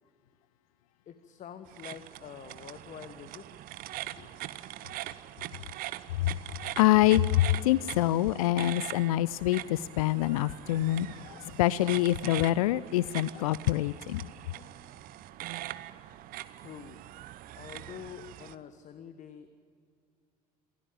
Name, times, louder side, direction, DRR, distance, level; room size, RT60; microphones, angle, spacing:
voice 1, 1.1-3.7 4.1-4.4 5.0-5.1 14.5-14.8 16.6-17.1 17.6-19.5, left 8 dB, 35° left, 1.4 m, -47 dB
sound 1, 1.7-18.5, right 14 dB, 45° right, 1.0 m, -42 dB
voice 2, 6.8-14.2, left 15 dB, 65° left, 0.5 m, -26 dB
28.0 x 17.0 x 9.0 m
figure-of-eight pair, 65°, 20 cm